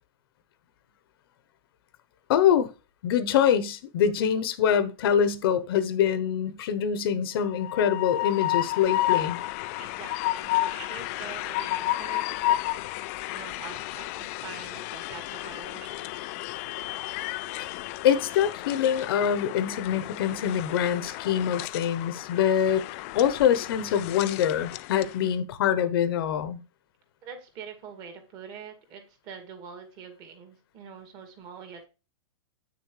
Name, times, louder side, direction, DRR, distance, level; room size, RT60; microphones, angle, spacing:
voice 1, 2.3-2.7 3.0-9.4 18.0-22.8 23.1-26.6, left 9 dB, 50° left, 1.0 m, -24 dB
Train, 7.4-25.2, left 16 dB, 30° left, 0.4 m, -32 dB
voice 2, 9.8-12.9 13.3-16.3 27.2-31.8, right 6 dB, 30° right, 2.3 m, -45 dB
9.0 x 6.7 x 3.2 m
hypercardioid pair, 160°, 15 cm